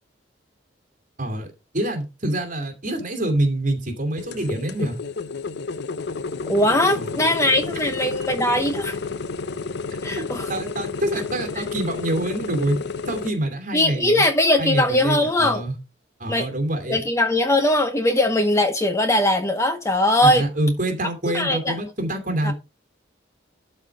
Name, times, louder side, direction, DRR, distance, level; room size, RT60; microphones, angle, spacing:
voice 1, 1.7-5.0 6.9-7.3 10.5-12.8 13.1-14.2 14.6-15.8 16.2-17.0 20.2-22.5, right 1 dB, 40° right, 2.6 m, -26 dB
sound 1, 4.2-13.3, left 4 dB, 60° left, 0.6 m, -31 dB
voice 2, 6.5-9.0 10.0-10.5 11.6-11.7 13.7-15.6 16.3-16.5 16.9-20.4 21.3-21.8 22.4-22.5, left 1 dB, 15° left, 0.9 m, -20 dB
12.0 x 4.4 x 4.6 m
head